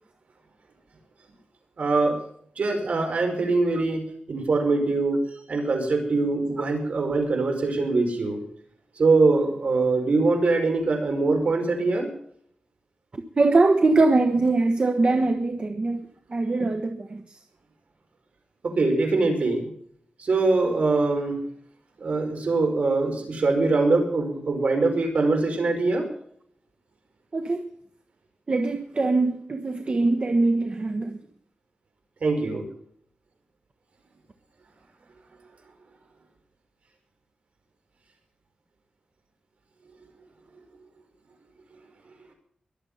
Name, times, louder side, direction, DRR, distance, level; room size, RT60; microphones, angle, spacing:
voice 1, 1.8-2.2 2.6-5.2 5.5-8.4 9.0-12.1 18.6-19.7 20.2-21.4 22.0-26.1 32.2-32.7, right 3 dB, 65° right, 5.2 m, -23 dB
voice 2, 13.1-16.0 16.3-17.4 27.3-27.7 28.5-31.2, right 3 dB, 45° right, 1.3 m, -22 dB
22.5 x 8.1 x 5.6 m
wide cardioid pair, 85°, 3 cm